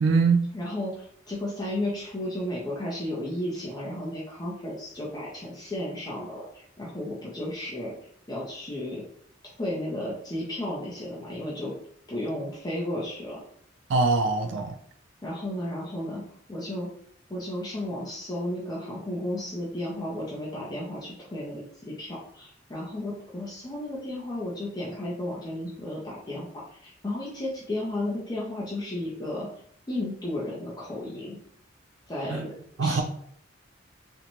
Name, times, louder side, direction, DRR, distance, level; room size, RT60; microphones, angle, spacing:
voice 1, 0.0-0.4 13.9-14.8 32.3-32.4 32.8-33.0, right 4 dB, 70° right, 6 dB, 0.4 m, -22 dB
voice 2, 0.5-7.9 8.3-9.0 9.6-11.7 12.1-13.4 15.2-16.2 16.5-16.9 17.3-29.5 29.9-31.4 32.1-32.5 32.8-33.0, left 1 dB, 20° left, -6 dB, 0.4 m, -33 dB
2.5 x 2.1 x 2.9 m, 0.64 s
head